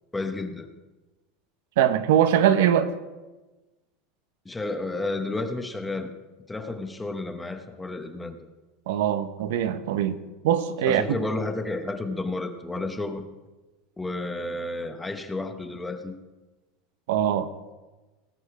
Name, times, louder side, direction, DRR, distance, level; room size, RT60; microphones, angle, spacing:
voice 1, 0.1-0.7 4.4-6.1 6.5-8.4 10.9-13.2 14.0-16.2, left 2 dB, 10° left, 8 dB, 0.9 m, -31 dB
voice 2, 1.8-2.9 8.9-11.0 17.1-17.5, right 10 dB, 80° right, 11 dB, 0.9 m, -22 dB
18.5 x 6.7 x 4.9 m, 1.2 s
supercardioid pair, 145°, 0 cm